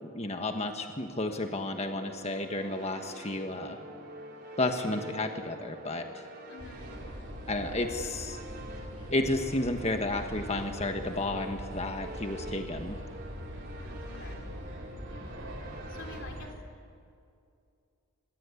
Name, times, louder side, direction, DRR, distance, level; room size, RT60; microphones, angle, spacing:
voice 1, 0.0-3.8 4.6-6.2 7.5-8.4 9.1-13.0, left 2 dB, 30° left, 5 dB, 1.4 m, -32 dB
sound 1, 1.4-16.2, right 1 dB, 45° right, 4.4 m, -47 dB
voice 2, 6.5-6.8 9.0-9.1 14.0-14.4 15.0-15.2 15.6-16.5, left 2 dB, 60° left, 4 dB, 3.3 m, -48 dB
sound 2, 6.6-16.5, equal, 65° right, 6.0 m, -42 dB
26.0 x 21.0 x 8.5 m, 2.4 s
head